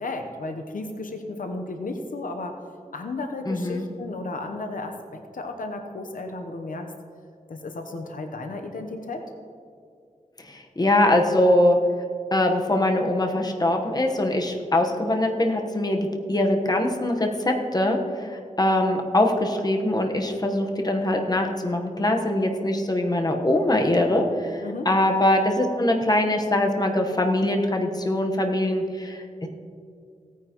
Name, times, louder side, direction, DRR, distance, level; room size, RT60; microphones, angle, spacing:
voice 1, 0.0-2.5 2.9-6.9 7.5-9.2 24.6-24.9, left 2 dB, 85° left, 5 dB, 0.9 m, -34 dB
voice 2, 3.5-3.9 10.5-11.8 12.3-29.5, left 1 dB, 30° left, 3 dB, 1.1 m, -23 dB
17.0 x 9.4 x 3.0 m, 2.3 s
wide cardioid pair, 85°, 14 cm